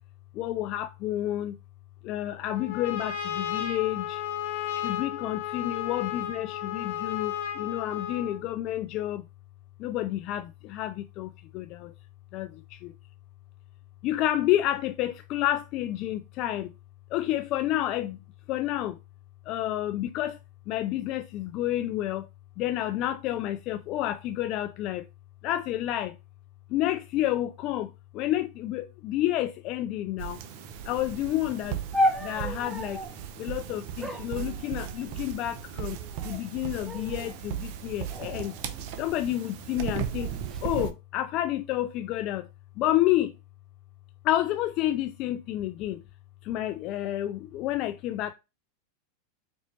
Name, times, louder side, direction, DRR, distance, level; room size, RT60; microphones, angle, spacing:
voice 1, 0.3-1.6 2.0-4.2 4.7-9.2 9.8-11.9 12.3-12.9 14.0-16.7 17.1-18.2 18.5-19.0 19.5-20.4 20.7-22.3 22.6-25.1 25.4-26.2 26.7-30.4 30.9-31.8 32.2-33.0 33.4-36.0 36.2-38.5 39.0-40.3 40.6-42.5 42.8-43.3 44.2-46.0 46.4-48.3, left 14 dB, 50° left, 0.3 m, -29 dB
Trumpet, 2.4-8.4, left 10 dB, 70° left, 1.0 m, -34 dB
sound 1, 30.2-40.9, right 10 dB, 60° right, 0.6 m, -37 dB
sound 2, 31.9-33.2 34.0-35.2 36.0-36.5 36.8-37.4 38.1-39.4 40.2-40.6, equal, 10° right, 0.8 m, -32 dB
4.2 x 2.9 x 3.0 m
hypercardioid pair, 110°, 0 cm